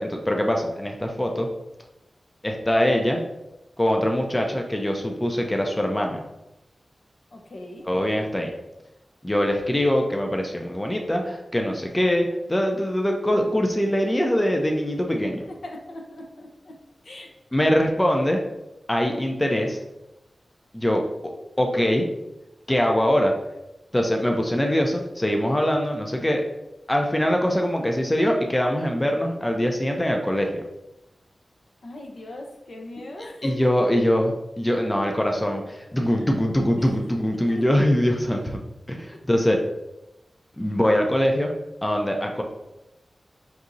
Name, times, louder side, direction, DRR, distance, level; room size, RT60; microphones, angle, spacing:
voice 1, 0.0-1.5 2.4-3.2 3.8-6.2 7.9-8.5 9.2-15.4 17.5-18.4 18.9-19.8 20.7-21.0 21.6-22.1 22.7-23.3 23.9-26.4 26.9-30.6 33.4-38.6 38.9-39.6 40.6-41.5 41.8-42.4, equal, 15° left, 2 dB, 0.5 m, -23 dB
voice 2, 7.3-7.9 15.4-16.8 17.0-17.3 17.6-17.8 31.8-33.7 36.1-36.3 36.8-36.9 37.3-37.6, left 1 dB, 75° left, 1 dB, 0.7 m, -40 dB
6.0 x 2.8 x 2.6 m, 0.91 s
wide cardioid pair, 100°, 0 cm